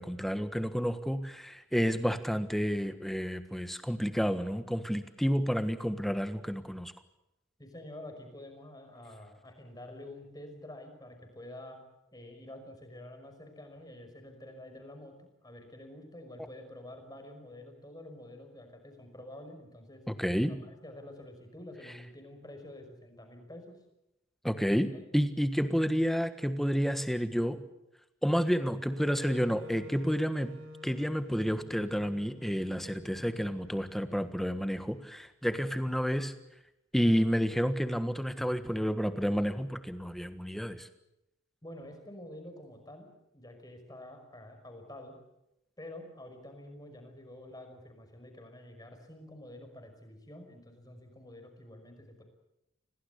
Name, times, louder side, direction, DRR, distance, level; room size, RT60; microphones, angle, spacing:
voice 1, 0.0-6.9 20.1-20.5 24.4-24.9 25.1-27.6 28.2-30.5 30.8-36.3 36.9-40.9, equal, ahead, 10 dB, 1.4 m, -30 dB
voice 2, 7.6-11.8 12.1-15.1 15.4-20.0 20.5-23.7 24.9-25.0 41.6-45.1 45.8-52.2, left 1 dB, 20° left, 5 dB, 5.6 m, -48 dB
Wind instrument woodwind instrument, 28.9-35.0, equal, 80° right, 4.0 m, -49 dB
27.5 x 19.0 x 8.3 m, 0.87 s
head